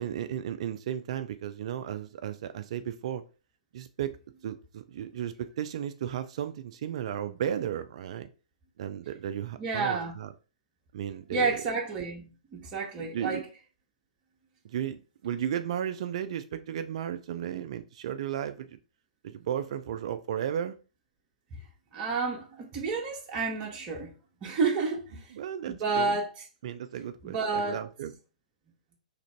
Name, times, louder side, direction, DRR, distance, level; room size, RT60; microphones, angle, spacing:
voice 1, 0.0-3.2 3.7-4.2 4.4-8.3 8.8-10.3 10.9-11.6 12.9-13.4 14.6-18.8 19.2-20.8 25.3-26.2 26.6-28.1, right 9 dB, 50° right, 0.3 m, -34 dB
voice 2, 9.6-10.1 11.3-13.4 21.9-24.1 24.4-25.3 25.7-26.3 27.2-27.8, right 4 dB, 25° right, 0.9 m, -30 dB
3.3 x 2.5 x 4.4 m
figure-of-eight pair, 115°, 4 cm